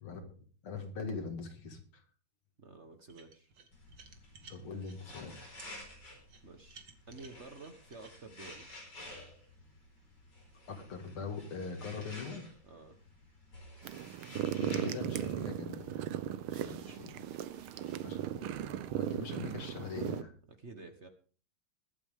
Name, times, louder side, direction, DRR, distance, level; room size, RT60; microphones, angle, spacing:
voice 1, 0.0-0.4 0.6-2.0 4.5-5.4 10.7-12.5 14.6-16.0 16.5-17.1 18.0-18.6 19.0-20.3, left 5 dB, 85° left, 5 dB, 2.9 m, -42 dB
voice 2, 2.6-3.5 6.4-6.8 7.1-8.7 12.6-13.0 16.5-17.0 20.6-21.1, right 3 dB, 40° right, 7 dB, 1.2 m, -51 dB
sound 1, 3.1-5.0 5.6-5.7 6.3-8.7, right 5 dB, 60° right, 2.2 m, -56 dB
sound 2, 3.7-19.5, left 1 dB, 55° left, 5.3 m, -53 dB
sound 3, 13.8-20.2, right 10 dB, 90° right, 1.7 m, -37 dB
22.0 x 8.8 x 3.6 m, 0.41 s
omnidirectional pair, 2.3 m